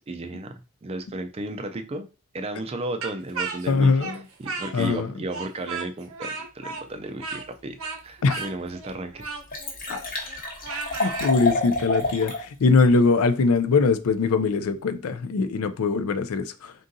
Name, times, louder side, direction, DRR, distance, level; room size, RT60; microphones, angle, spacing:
voice 1, 0.0-2.1 2.3-3.9 4.4-7.8 8.0-9.2, right 2 dB, 25° right, 0.4 m, -34 dB
Speech, 3.0-5.0 5.3-11.3, right 4 dB, 65° right, 0.7 m, -35 dB
voice 2, 3.7-4.1 4.7-5.1 8.2-8.4 9.9-10.1 11.0-16.7, left 4 dB, 70° left, 0.4 m, -22 dB
Liquid, 8.3-8.4 8.9-9.0 9.2-12.4 12.8-12.9, left 2 dB, 40° left, 1.0 m, -28 dB
3.9 x 3.7 x 2.6 m
head